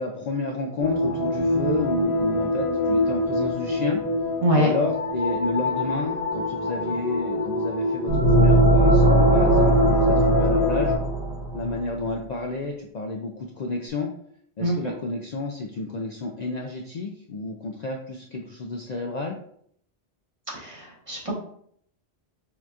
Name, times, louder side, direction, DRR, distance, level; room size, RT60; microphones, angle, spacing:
voice 1, 0.0-4.0 4.5-10.9 11.5-14.1 14.6-19.4, left 3 dB, 55° left, 1 dB, 0.5 m, -30 dB
sound 1, 0.8-11.0, left 2 dB, 10° right, 1.4 m, -24 dB
sound 2, 8.1-11.8, right 2 dB, 80° right, 1.3 m, -20 dB
voice 2, 14.6-14.9 20.5-21.3, equal, 30° right, -4 dB, 1.3 m, -24 dB
6.4 x 2.9 x 2.4 m, 0.65 s
omnidirectional pair, 1.1 m